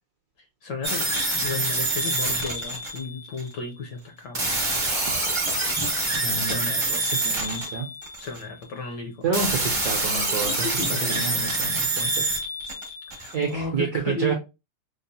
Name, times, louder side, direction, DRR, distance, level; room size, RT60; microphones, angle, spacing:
voice 1, 0.6-1.1 1.4-4.5 6.4-7.0 8.2-9.2 10.6-11.2 13.2-14.3, left 4 dB, 70° left, 1.1 m, -33 dB
sound 1, 0.8-3.5 4.3-8.5 9.3-13.5, right 2 dB, 30° right, 0.5 m, -26 dB
voice 2, 6.2-7.9 9.2-10.7 11.0-12.2 13.3-14.3, right 5 dB, 70° right, 1.0 m, -29 dB
4.7 x 2.4 x 2.7 m
omnidirectional pair, 2.4 m